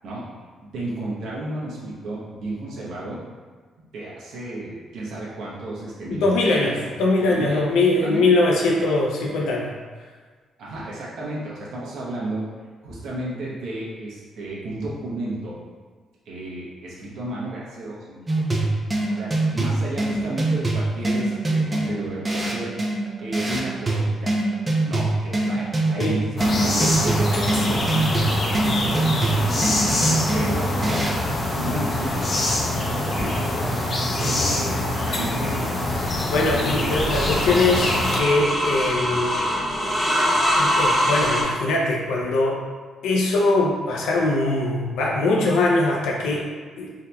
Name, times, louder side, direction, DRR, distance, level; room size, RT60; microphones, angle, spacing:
voice 1, 0.6-3.2 3.9-6.3 6.8-6.9 7.2-7.6 8.0-8.2 8.5-8.7 10.6-12.5 12.8-15.6 16.3-18.6 19.0-22.7 23.2-24.3 24.8-28.4 28.7-29.3 29.5-29.9 30.3-31.1 31.6-32.3 33.1-33.4 34.1-35.7, right 2 dB, 75° right, -6 dB, 0.9 m, -32 dB
voice 2, 6.1-9.7 26.0-26.2 34.1-34.8 36.1-39.3 40.5-42.6 43.0-46.5 46.8-46.9, left 2 dB, 85° left, -2 dB, 0.5 m, -22 dB
sound 1, 18.3-31.3, right 2 dB, 25° right, 0.6 m, -24 dB
sound 2, 26.4-38.2, left 1 dB, 40° left, 0.6 m, -24 dB
sound 3, 36.9-41.4, equal, 10° left, 1.0 m, -23 dB
3.8 x 2.8 x 2.2 m, 1.5 s
cardioid pair, 90°, 0 cm